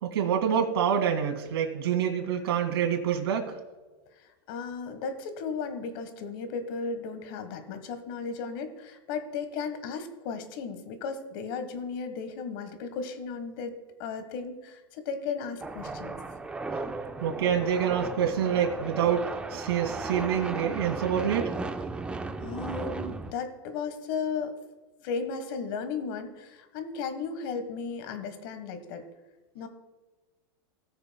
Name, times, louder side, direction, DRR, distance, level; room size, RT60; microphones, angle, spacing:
voice 1, 0.0-3.5 17.2-21.5, right 8 dB, 85° right, 2 dB, 2.2 m, -27 dB
voice 2, 4.2-16.1 22.4-24.6 25.0-29.0 29.5-29.7, left 5 dB, 55° left, 9 dB, 1.4 m, -35 dB
sound 1, 15.6-23.3, right 3 dB, 10° right, 0.5 m, -35 dB
19.5 x 6.6 x 2.3 m, 1.2 s
supercardioid pair, 140°, 13 cm